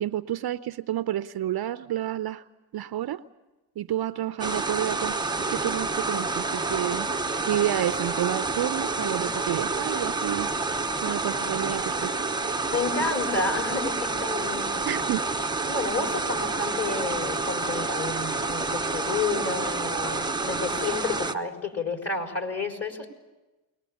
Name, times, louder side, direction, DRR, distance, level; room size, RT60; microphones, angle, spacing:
voice 1, 0.0-2.4 2.7-3.2 3.8-7.1 7.5-10.5 11.0-12.1 14.8-15.2, right 12 dB, 50° right, 12 dB, 0.8 m, -29 dB
sound 1, 4.4-21.3, right 3 dB, 10° right, 0.9 m, -28 dB
voice 2, 12.7-15.0 15.7-23.1, left 4 dB, 30° left, 3 dB, 4.4 m, -30 dB
22.0 x 20.0 x 8.6 m, 1.1 s
supercardioid pair, 65°, 46 cm